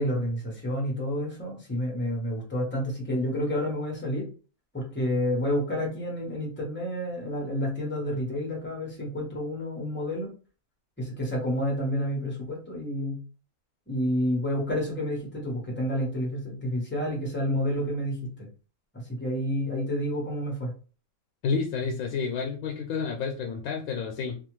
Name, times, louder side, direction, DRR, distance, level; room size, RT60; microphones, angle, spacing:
voice 1, 0.0-4.2 4.7-10.3 11.0-13.2 13.9-18.5 19.2-20.7, equal, 10° left, -2 dB, 0.9 m, -29 dB
voice 2, 21.4-24.4, left 5 dB, 85° left, 1 dB, 1.0 m, -30 dB
2.6 x 2.4 x 3.0 m, 0.37 s
omnidirectional pair, 1.5 m